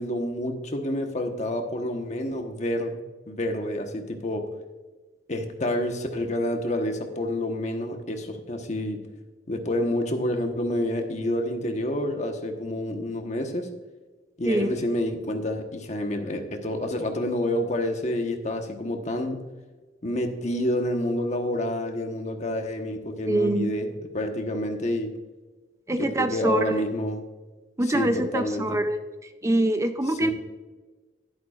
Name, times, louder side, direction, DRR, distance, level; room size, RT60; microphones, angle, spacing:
voice 1, 0.0-3.0 3.3-4.5 5.3-9.0 9.5-13.7 14.4-19.4 20.0-25.1 25.9-27.2 27.9-28.8 30.1-30.3, left 1 dB, 45° left, 4 dB, 1.2 m, -28 dB
voice 2, 23.3-23.7 25.9-26.8 27.8-29.0 29.4-30.3, right 1 dB, 15° right, 8 dB, 0.5 m, -24 dB
11.5 x 11.0 x 2.5 m, 1.3 s
head